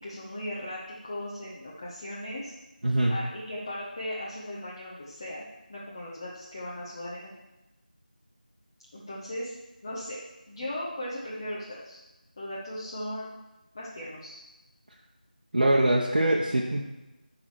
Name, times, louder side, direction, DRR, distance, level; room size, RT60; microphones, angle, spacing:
voice 1, 0.0-2.5 3.1-5.4 5.7-7.3 8.9-9.5 9.8-10.2 10.5-12.0 12.4-13.4 13.7-14.4, left 1 dB, 25° left, -8 dB, 1.3 m, -37 dB
voice 2, 2.8-3.1 15.5-16.8, right 1 dB, 50° right, -4 dB, 1.2 m, -23 dB
11.5 x 3.9 x 6.4 m, 1.0 s
figure-of-eight pair, 175°, 5 cm